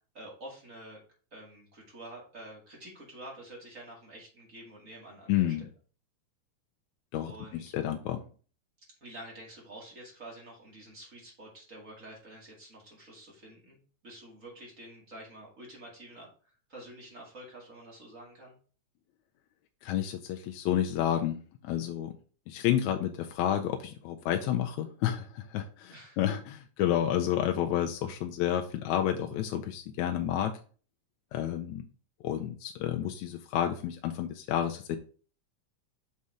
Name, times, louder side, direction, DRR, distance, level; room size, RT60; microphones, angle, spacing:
voice 1, 0.1-1.0 1.3-5.7 7.3-7.7 9.0-18.6 25.9-26.2, right 1 dB, 30° right, -3 dB, 2.2 m, -48 dB
voice 2, 5.3-5.7 7.1-8.2 19.8-21.4 21.6-22.2 22.5-30.6 31.3-31.9 32.2-35.0, left 11 dB, 80° left, 4 dB, 1.9 m, -30 dB
6.4 x 4.2 x 4.8 m, 0.39 s
omnidirectional pair, 3.5 m